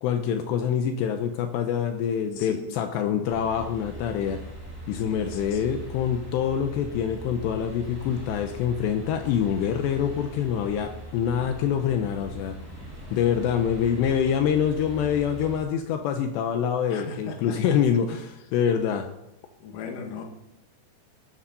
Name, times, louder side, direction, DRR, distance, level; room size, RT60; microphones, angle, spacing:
voice 1, 0.0-4.4 4.9-12.6 13.1-19.1, left 8 dB, 80° left, 6 dB, 2.9 m, -25 dB
voice 2, 2.3-2.8 4.9-5.6 16.9-17.8 19.6-20.2, left 5 dB, 55° left, 3 dB, 2.8 m, -38 dB
sound 1, 3.3-15.6, right 1 dB, 5° right, 3.4 m, -41 dB
13.0 x 12.5 x 4.0 m, 0.93 s
omnidirectional pair, 5.3 m